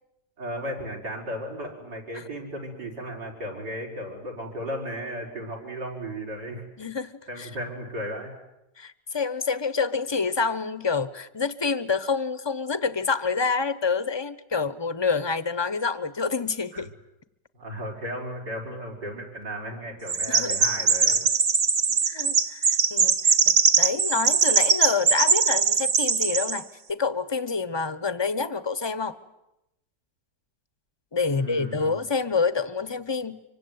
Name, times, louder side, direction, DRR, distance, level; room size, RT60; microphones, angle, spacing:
voice 1, 0.4-6.6 7.3-8.3 16.7-16.8 17.5-21.2 31.3-32.0, equal, 85° right, 3 dB, 6.6 m, -35 dB
voice 2, 6.8-7.5 8.8-16.9 20.3-20.6 22.1-29.2 31.1-33.4, left 4 dB, 20° left, 15 dB, 0.8 m, -27 dB
Chirp tweet, 20.1-26.6, right 5 dB, 50° right, 1.6 m, -21 dB
25.5 x 24.5 x 9.5 m, 0.88 s
omnidirectional pair, 1.8 m